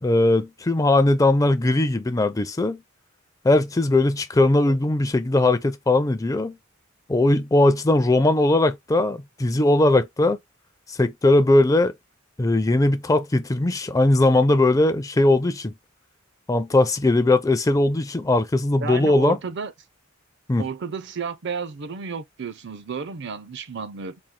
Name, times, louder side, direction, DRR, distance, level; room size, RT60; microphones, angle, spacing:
voice 1, 0.0-2.8 3.4-6.6 7.1-10.4 11.0-11.9 12.4-15.7 16.5-19.4 20.5-20.7, left 2 dB, 15° left, 0.4 m, -19 dB
voice 2, 18.8-19.7 20.6-24.2, right 5 dB, 55° right, 0.5 m, -32 dB
4.4 x 2.3 x 3.6 m
head